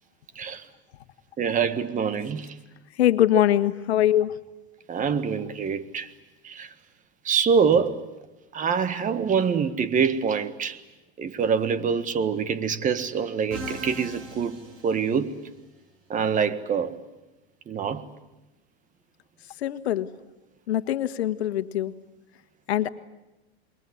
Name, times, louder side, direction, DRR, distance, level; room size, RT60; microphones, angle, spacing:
voice 1, 1.4-2.6 4.9-6.1 6.4-6.7 7.2-8.0 8.5-10.8 11.2-15.4 16.1-17.0 17.7-18.0, right 6 dB, 25° right, 1.5 m, -25 dB
voice 2, 3.0-4.4 19.6-20.1 20.7-21.9 22.7-22.9, left 12 dB, 80° left, 1.5 m, -22 dB
Musical instrument, 13.5-15.6, right 1 dB, 40° right, 8.0 m, -39 dB
28.0 x 22.0 x 9.6 m
hypercardioid pair, 120°, 32 cm